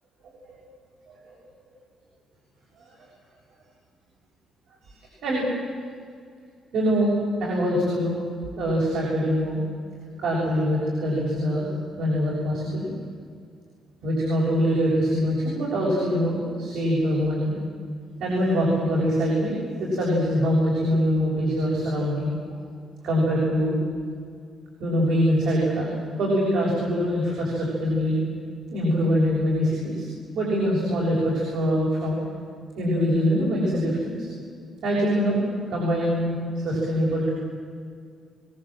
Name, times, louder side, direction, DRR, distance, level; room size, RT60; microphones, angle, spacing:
voice 1, 1.1-1.4 2.9-3.0 4.8-5.0 5.2-5.5 6.7-8.2 8.6-9.6 10.2-11.7 12.0-12.9 14.0-17.5 18.2-22.3 23.0-23.8 24.8-25.9 26.2-28.2 28.7-30.1 30.3-32.2 32.8-34.3 34.8-35.4 35.7-37.3, equal, 75° right, -4 dB, 6.8 m, -24 dB
24.0 x 18.5 x 7.8 m, 2.2 s
cardioid pair, 90°, 0 cm